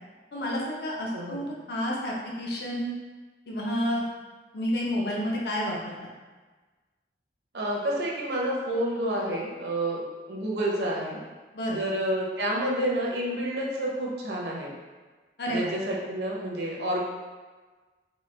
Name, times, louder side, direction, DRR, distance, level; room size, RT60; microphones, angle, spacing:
voice 1, 0.3-2.9 3.5-4.0 4.5-6.0 11.5-11.8 15.4-15.7, equal, 65° left, -3 dB, 0.6 m, -30 dB
voice 2, 1.1-1.4 7.5-10.0 10.3-11.2 11.7-14.7 15.5-17.0, right 1 dB, 70° right, -3 dB, 0.6 m, -29 dB
3.1 x 2.3 x 3.1 m, 1.3 s
head